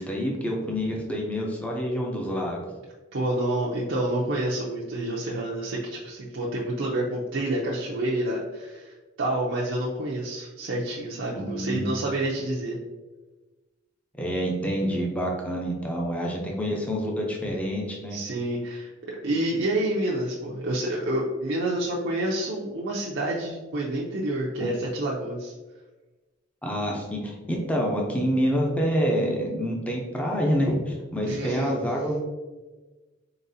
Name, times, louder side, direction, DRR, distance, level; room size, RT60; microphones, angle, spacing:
voice 1, 0.0-2.6 11.3-12.0 14.2-18.2 26.6-32.2, equal, 5° left, -2 dB, 0.6 m, -27 dB
voice 2, 3.1-12.8 17.4-17.5 18.1-25.5 31.2-31.7, right 1 dB, 80° right, -4 dB, 0.6 m, -28 dB
4.0 x 3.9 x 2.7 m, 1.2 s
head